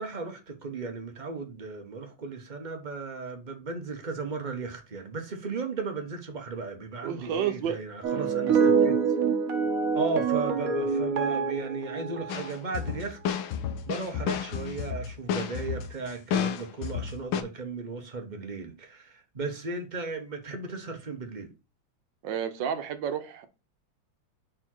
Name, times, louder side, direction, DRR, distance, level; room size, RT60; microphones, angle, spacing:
voice 1, 0.0-8.9 9.9-13.2 13.8-21.5, right 4 dB, 30° right, 0.9 m, -35 dB
voice 2, 7.0-7.8 22.2-23.5, right 8 dB, 70° right, 1.5 m, -30 dB
sound 1, 8.0-13.0, right 5 dB, 55° right, 1.3 m, -26 dB
sound 2, 12.3-17.4, left 8 dB, 90° left, 1.6 m, -31 dB
5.1 x 4.2 x 4.5 m
omnidirectional pair, 2.2 m